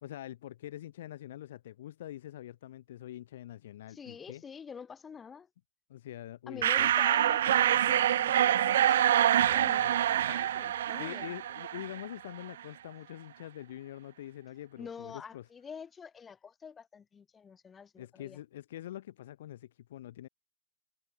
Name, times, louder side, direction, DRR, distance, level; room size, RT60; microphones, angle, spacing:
voice 1, 0.0-4.4 5.9-6.9 9.8-9.9 11.0-15.5 18.0-20.3, left 13 dB, 60° left, 1.1 m, -45 dB
voice 2, 3.9-5.5 6.5-11.3 14.8-18.4, left 6 dB, 20° left, 4.2 m, -47 dB
sound 1, 6.6-12.1, right 11 dB, 60° right, 0.7 m, -26 dB
figure-of-eight pair, 90°, 0 cm